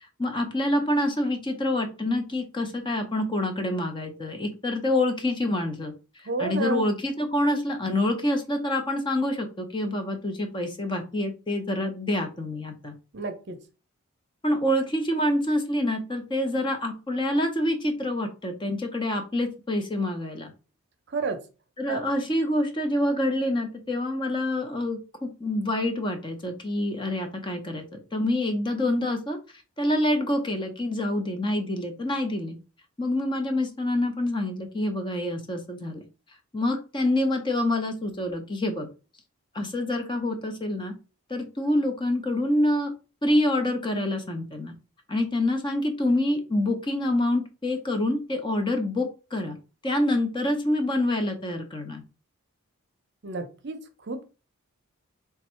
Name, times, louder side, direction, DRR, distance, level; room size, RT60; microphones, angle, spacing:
voice 1, 0.2-5.9 6.4-12.9 14.4-20.5 21.8-27.8 28.1-29.4 29.8-32.6 33.0-36.0 36.5-38.9 39.5-40.9 41.3-42.9 43.2-44.7 45.1-49.6 49.8-52.0, left 1 dB, 20° left, 5 dB, 0.6 m, -26 dB
voice 2, 6.3-6.9 13.1-13.6 21.1-21.4 21.9-22.0 53.2-54.3, right 4 dB, 50° right, 7 dB, 0.7 m, -31 dB
3.5 x 2.6 x 4.3 m, 0.32 s
head